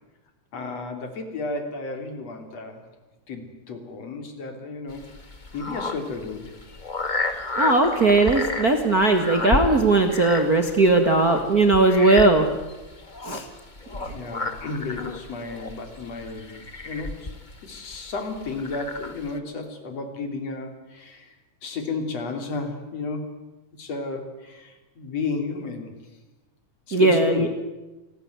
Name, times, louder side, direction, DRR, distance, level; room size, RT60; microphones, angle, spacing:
voice 1, 0.5-2.8 3.3-5.1 5.5-6.5 13.9-17.3 17.6-21.3 21.6-23.3 23.8-25.9 26.9-27.5, left 4 dB, 55° left, 6 dB, 4.1 m, -33 dB
sound 1, 4.9-19.4, left 3 dB, 30° left, 0.8 m, -33 dB
voice 2, 7.6-12.5 13.3-13.4 26.9-27.5, right 2 dB, 35° right, 5 dB, 1.8 m, -18 dB
28.5 x 19.5 x 9.4 m, 1.1 s
omnidirectional pair, 3.7 m